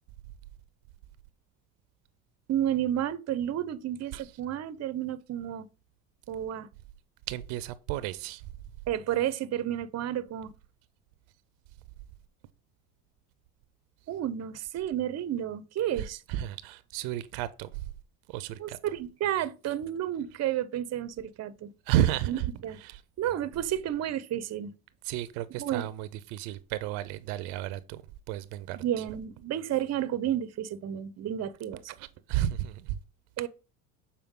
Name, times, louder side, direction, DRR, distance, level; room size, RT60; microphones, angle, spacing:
voice 1, 2.5-5.7 6.3-6.7 8.9-10.5 14.1-16.2 18.6-21.7 22.3-22.8 23.2-24.7 25.6-25.9 28.8-32.0 33.4-33.5, right 11 dB, 40° right, 0.7 m, -31 dB
voice 2, 7.3-8.5 16.0-17.9 18.3-18.8 21.9-22.5 22.8-23.0 25.0-28.0 28.3-29.0 32.0-33.0, right 13 dB, 75° right, 0.6 m, -32 dB
7.0 x 4.3 x 3.7 m
supercardioid pair, 85°, 40 cm